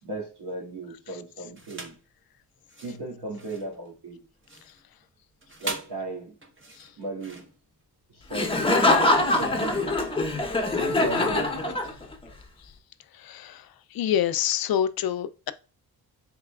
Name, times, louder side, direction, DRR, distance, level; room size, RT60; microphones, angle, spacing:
voice 1, 0.0-2.0 2.8-4.2 5.6-6.4 7.0-7.5 8.1-8.7 9.4-10.1 10.7-11.8, right 2 dB, 80° right, 2.1 m, -36 dB
sound 1, 1.5-2.1 2.6-10.4, right 3 dB, 30° right, 1.1 m, -42 dB
Laughter, 8.3-12.2, left 2 dB, 15° left, 0.8 m, -23 dB
voice 2, 13.2-13.6 13.9-15.5, left 10 dB, 65° left, 0.5 m, -26 dB
4.0 x 3.8 x 2.3 m
cardioid pair, 90°, 39 cm